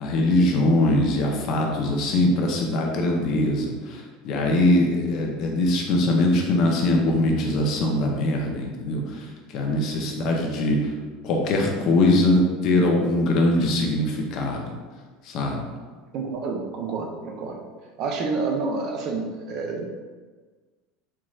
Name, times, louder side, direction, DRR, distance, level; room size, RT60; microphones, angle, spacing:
voice 1, 0.0-3.7 4.2-9.0 9.5-10.8 11.2-14.7 15.3-15.7, left 1 dB, 55° left, 0 dB, 0.8 m, -22 dB
voice 2, 16.1-17.6 18.0-19.9, right 4 dB, 55° right, 1 dB, 0.7 m, -29 dB
4.6 x 3.0 x 2.4 m, 1.4 s
hypercardioid pair, 80°, 0 cm